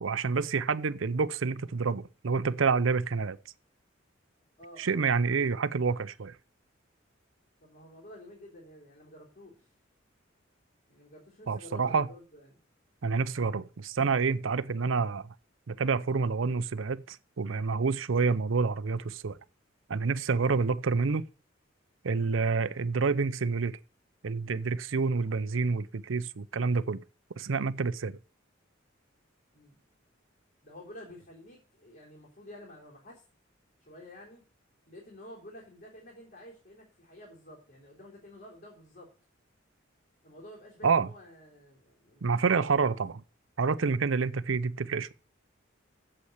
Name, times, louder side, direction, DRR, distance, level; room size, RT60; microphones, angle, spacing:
voice 1, 0.0-3.4 4.8-6.4 11.5-12.1 13.0-15.3 15.7-19.4 19.9-21.2 22.0-23.8 24.2-27.0 27.4-28.2 40.8-41.1 42.2-43.2 43.6-45.1, right 4 dB, 80° right, 0.6 m, -28 dB
voice 2, 4.6-4.9 7.6-9.7 10.9-12.6 20.4-20.6 29.5-29.8 30.6-33.2 33.8-34.4 34.9-39.1 40.2-42.9, left 1 dB, 50° left, 3.6 m, -50 dB
8.6 x 7.9 x 8.0 m
head